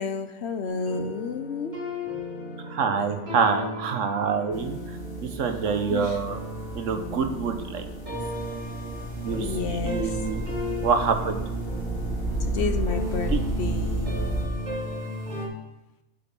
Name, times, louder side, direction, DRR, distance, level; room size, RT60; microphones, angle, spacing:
voice 1, 0.0-1.7 5.9-6.2 9.4-10.2 12.4-14.2, left 5 dB, 60° left, 8 dB, 0.9 m, -31 dB
sound 1, 0.7-15.5, equal, 30° right, 3.1 m, -35 dB
voice 2, 2.6-4.8 5.2-6.4 6.7-8.2 9.2-10.4 10.8-11.4 13.3-13.4, right 5 dB, 65° right, 6 dB, 1.2 m, -26 dB
sound 2, 4.5-14.4, right 1 dB, 15° left, 2.0 m, -32 dB
7.7 x 7.4 x 6.1 m, 0.91 s
omnidirectional pair, 1.4 m